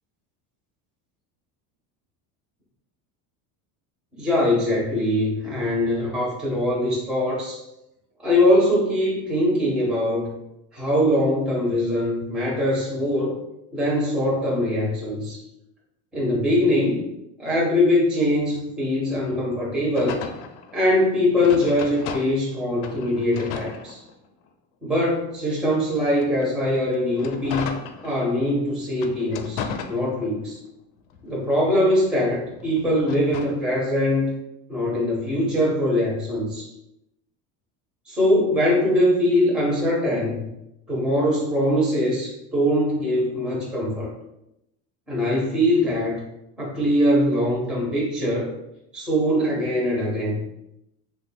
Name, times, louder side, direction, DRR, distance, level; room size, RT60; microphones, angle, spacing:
voice 1, 4.2-7.6 8.2-10.3 10.7-13.4 13.7-15.4 16.1-17.1 17.4-20.2 20.7-24.0 24.8-27.7 28.0-30.6 31.2-34.3 34.7-36.7 38.1-40.4 40.9-44.1 45.1-46.2 46.6-48.5 48.9-50.4, left 1 dB, ahead, -5 dB, 0.5 m, -22 dB
sound 1, 19.9-22.5 22.8-24.5 25.0-28.5 28.9-30.6 31.0-33.6, left 6 dB, 65° left, 0.5 m, -36 dB
3.0 x 2.2 x 4.2 m, 0.84 s
cardioid pair, 170°, 42 cm